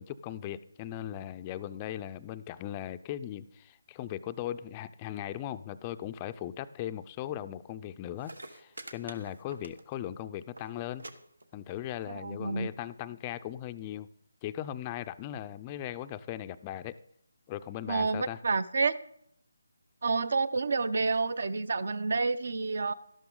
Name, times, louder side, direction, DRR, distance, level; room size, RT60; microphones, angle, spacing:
voice 1, 0.0-11.1 11.5-14.1 14.4-17.0 17.5-18.4, left 12 dB, 20° left, 13 dB, 0.4 m, -38 dB
sound 1, 7.9-8.0 8.2-10.1 10.4-10.7 11.0-11.1 11.4-11.9 12.7-12.8, right 2 dB, 90° right, 1.2 m, -46 dB
voice 2, 12.1-12.7 17.9-19.0 20.0-22.9, right 4 dB, 60° right, 18 dB, 0.6 m, -29 dB
12.5 x 11.5 x 3.8 m, 0.73 s
figure-of-eight pair, 160°, 0 cm